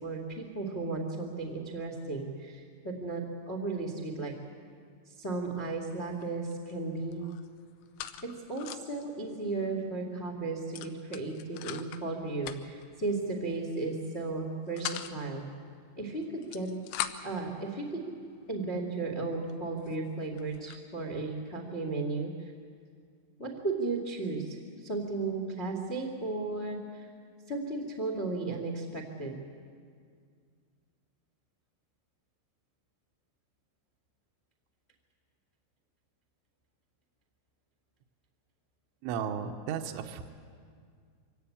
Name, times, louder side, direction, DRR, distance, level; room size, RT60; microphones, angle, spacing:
voice 1, 0.0-4.3 5.0-7.2 8.2-15.4 16.0-16.7 17.2-18.0 18.5-22.3 23.4-27.1 27.5-29.3, right 3 dB, 65° left, 2 dB, 0.6 m, -35 dB
sound 1, 5.3-5.6 5.9-6.7 7.0-9.0 9.4-9.5 9.8-10.0 10.7-12.0 12.4-12.9 13.7-14.0 14.4-15.2 16.2-17.4 18.1-18.2 18.8-18.9 19.5-19.6 19.8-20.8, left 12 dB, 85° left, 3.3 m, -41 dB
voice 2, 39.0-40.2, right 7 dB, 75° right, 4 dB, 3.1 m, -34 dB
24.5 x 17.5 x 8.6 m, 2.1 s
omnidirectional pair, 5.9 m